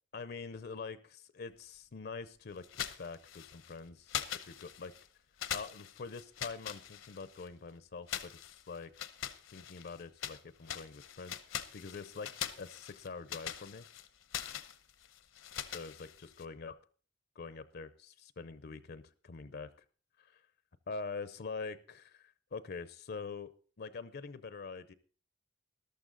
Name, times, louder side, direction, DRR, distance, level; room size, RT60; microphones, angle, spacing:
voice 1, 0.1-4.9 5.5-8.9 9.5-11.4 11.7-13.9 15.7-16.8 17.4-19.7 20.2-20.4 20.9-23.5 23.8-24.9, left 4 dB, 50° left, 14 dB, 0.6 m, -45 dB
sound 1, 2.6-3.7 4.1-5.1 5.4-7.5 8.1-10.4 10.7-16.5, left 10 dB, 75° left, 0.8 m, -42 dB
13.5 x 12.0 x 3.9 m, 0.40 s
head